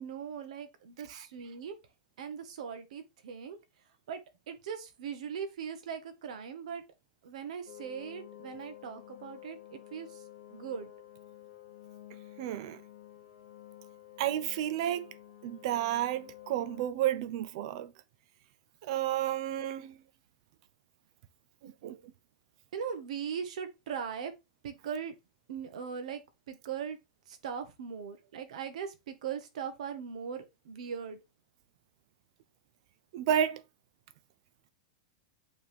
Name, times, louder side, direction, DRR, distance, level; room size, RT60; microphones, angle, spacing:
voice 1, 0.0-1.8 2.2-3.6 4.1-4.2 4.5-6.8 7.2-10.2 10.5-10.9 22.7-24.3 24.6-25.1 25.5-26.2 26.5-27.0 27.3-31.2, right 7 dB, 70° right, 1.3 m, -40 dB
sound 1, 7.7-16.9, left 13 dB, 60° left, 1.2 m, -51 dB
voice 2, 12.4-12.8 14.2-15.1 15.4-17.9 18.8-20.0 21.6-22.0 33.1-33.6, right 11 dB, 50° right, 0.6 m, -31 dB
8.5 x 3.6 x 3.5 m
supercardioid pair, 165°, 4 cm